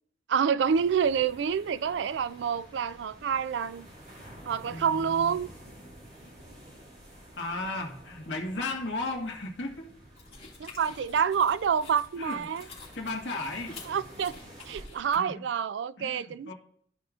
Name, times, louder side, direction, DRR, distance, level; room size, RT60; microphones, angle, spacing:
voice 1, 0.3-3.9 4.5-5.5 10.6-12.7 13.9-14.3 14.7-16.5, right 7 dB, 70° right, 0.3 m, -27 dB
sound 1, 0.6-14.9, equal, 40° right, 2.4 m, -51 dB
voice 2, 4.7-5.4 7.4-9.9 12.2-13.8 15.1-15.4 16.0-16.5, left 2 dB, 70° left, 1.6 m, -35 dB
sound 2, 10.2-15.2, left 3 dB, 30° left, 2.3 m, -49 dB
13.5 x 4.9 x 2.5 m
head